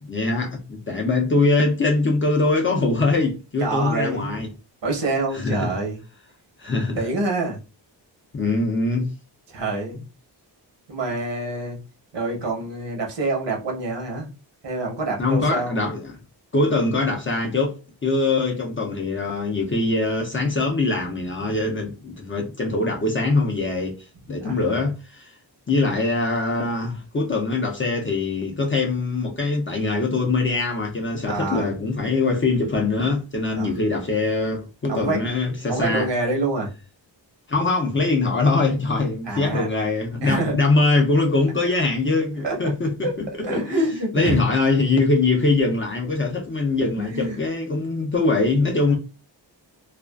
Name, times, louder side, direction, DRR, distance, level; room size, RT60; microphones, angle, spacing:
voice 1, 0.0-4.5 5.3-5.8 6.6-7.0 8.3-9.1 15.2-16.2 16.5-17.8 18.0-25.3 25.7-36.1 37.5-43.9 44.1-48.9, left 3 dB, 30° left, 0.5 m, -22 dB
voice 2, 3.6-4.4 4.8-6.0 7.0-7.6 9.5-10.0 10.9-11.8 12.1-14.3 14.6-15.8 24.4-24.6 31.3-31.7 33.6-33.7 34.9-35.2 35.7-36.7 39.3-39.7 40.2-40.6 42.4-42.7 43.0-43.1 43.4-44.4 47.0-47.4, right 2 dB, 65° right, 1.0 m, -26 dB
2.4 x 2.2 x 2.2 m
wide cardioid pair, 140°, 45 cm